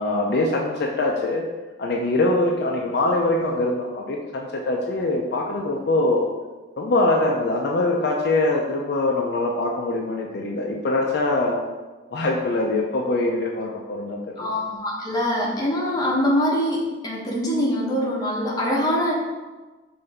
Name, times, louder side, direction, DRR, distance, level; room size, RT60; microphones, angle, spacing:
voice 1, 0.0-1.4 1.8-6.3 6.8-11.6 12.1-14.5, left 2 dB, 60° left, -1 dB, 0.5 m, -23 dB
voice 2, 14.4-19.1, equal, 20° left, -4 dB, 0.9 m, -23 dB
5.5 x 2.6 x 3.3 m, 1.3 s
head